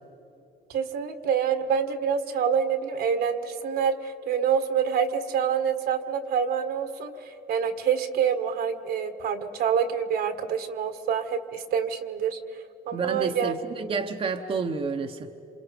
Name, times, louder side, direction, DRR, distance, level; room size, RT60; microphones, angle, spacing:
voice 1, 0.7-7.1 7.5-12.4 12.9-13.5, right 7 dB, 65° right, 8 dB, 1.6 m, -26 dB
voice 2, 12.9-15.3, right 4 dB, 35° right, 5 dB, 1.0 m, -30 dB
28.0 x 27.0 x 5.2 m, 3.0 s
cardioid pair, 110°, 17 cm